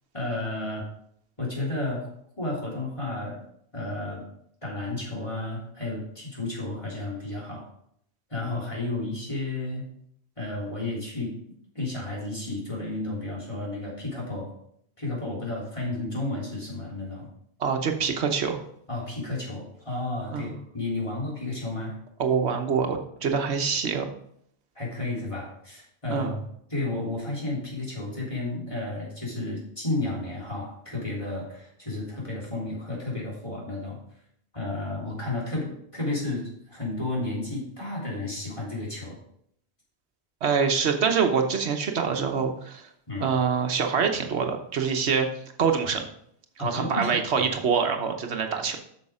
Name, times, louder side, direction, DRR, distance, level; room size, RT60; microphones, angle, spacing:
voice 1, 0.1-0.9 1.4-2.1 2.4-3.4 3.7-4.2 4.6-7.6 8.3-9.9 10.4-11.4 11.7-14.5 15.0-17.3 18.9-22.0 24.7-34.0 34.5-39.2 43.1-43.3 46.6-47.1 47.4-47.5, left 2 dB, 30° left, -4 dB, 3.3 m, -32 dB
voice 2, 17.6-18.6 20.3-20.5 22.2-24.1 26.1-26.3 40.4-42.9 43.2-45.3 45.6-46.0 46.6-48.8, right 6 dB, 80° right, 5 dB, 1.2 m, -25 dB
8.4 x 6.4 x 4.9 m, 0.69 s
omnidirectional pair, 1.1 m